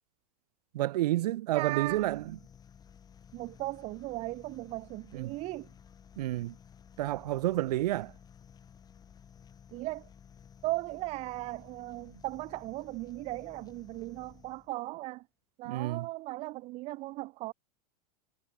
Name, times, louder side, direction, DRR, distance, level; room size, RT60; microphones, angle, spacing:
voice 1, 0.7-2.2 5.1-5.3 6.2-6.5 7.0-8.1 15.6-16.1, right 16 dB, 80° right, 0.5 m, -30 dB
voice 2, 1.5-2.1 3.3-5.7 9.7-10.1 10.6-15.2 15.6-17.5, right 20 dB, 30° right, 0.5 m, -37 dB
sound 1, 1.8-14.8, left 7 dB, 20° left, 7.3 m, -55 dB
supercardioid pair, 145°, 20 cm